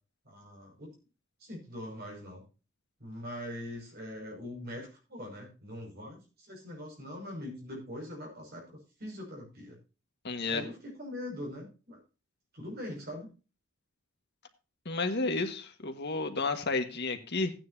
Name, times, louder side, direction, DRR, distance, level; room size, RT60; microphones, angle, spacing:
voice 1, 0.3-1.0 1.4-2.4 3.0-9.8 10.5-12.0 12.5-13.3, left 1 dB, 50° right, 0 dB, 5.7 m, -42 dB
voice 2, 10.2-10.6 14.8-17.5, left 3 dB, 55° left, 6 dB, 1.5 m, -31 dB
15.5 x 9.6 x 2.7 m, 0.32 s
head